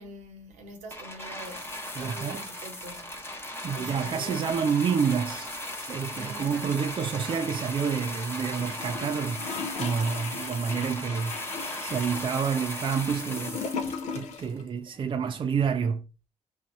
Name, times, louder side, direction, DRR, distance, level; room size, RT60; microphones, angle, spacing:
voice 1, 0.0-3.3 3.7-4.5 6.1-6.7, right 1 dB, 80° right, 0.9 m, -44 dB
sound 1, 0.9-14.6 15.3-15.4, left 1 dB, 20° left, 1.0 m, -37 dB
voice 2, 2.0-2.5 3.6-5.5 5.8-9.4 9.8-11.3 11.8-13.6 14.2-16.0, right 6 dB, 45° right, 0.4 m, -28 dB
Gurgling / Toilet flush, 8.5-14.6 14.9-15.0, left 5 dB, 70° left, 0.5 m, -38 dB
2.6 x 2.3 x 4.1 m
supercardioid pair, 55°, 12 cm